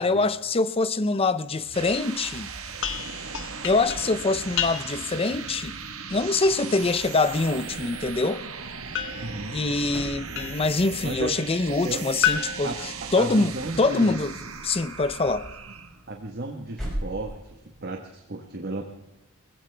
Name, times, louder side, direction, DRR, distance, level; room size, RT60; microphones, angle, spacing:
voice 1, 0.0-2.5 3.6-5.7 6.1-8.5 9.5-12.7 13.1-14.3 14.6-15.5, left 3 dB, 25° left, 0.6 m, -24 dB
sound 1, 1.5-16.0, right 5 dB, 70° right, 1.3 m, -38 dB
sound 2, 2.8-5.2 8.9-10.8 12.2-13.7, left 9 dB, 65° left, 1.0 m, -31 dB
sound 3, 6.7-17.8, equal, ahead, 5.6 m, -43 dB
voice 2, 9.2-9.6 11.0-11.3 11.8-12.0 12.6-14.2 16.1-18.8, right 2 dB, 50° right, 1.3 m, -34 dB
20.5 x 16.0 x 3.4 m
head